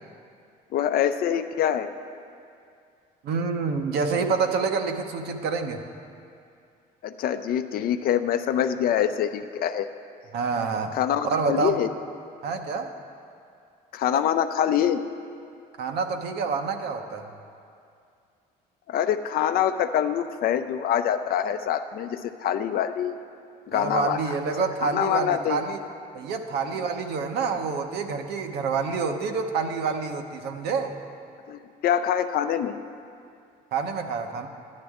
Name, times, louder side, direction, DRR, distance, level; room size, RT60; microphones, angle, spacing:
voice 1, 0.7-1.9 7.0-9.9 10.9-11.9 13.9-15.0 18.9-23.2 23.7-24.2 24.8-25.6 31.5-32.8, left 9 dB, 60° left, 9 dB, 0.5 m, -25 dB
voice 2, 3.2-5.8 10.3-11.0 11.2-11.9 12.4-12.9 15.8-17.3 23.7-25.8 26.1-30.9 33.7-34.5, right 5 dB, 75° right, 5 dB, 0.9 m, -27 dB
13.0 x 11.0 x 3.6 m, 2.4 s
cardioid pair, 110°, 17 cm